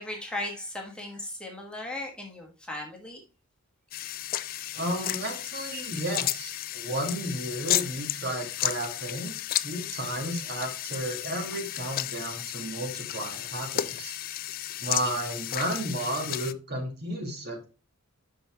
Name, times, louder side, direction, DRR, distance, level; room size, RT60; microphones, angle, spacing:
voice 1, 0.0-3.2, left 1 dB, 5° left, -1 dB, 1.2 m, -37 dB
sound 1, 3.9-16.5, left 13 dB, 40° left, 0.3 m, -33 dB
voice 2, 4.7-9.4 9.6-14.2 14.8-17.7, right 1 dB, 50° right, 3 dB, 1.9 m, -33 dB
5.7 x 5.5 x 4.4 m, 0.33 s
head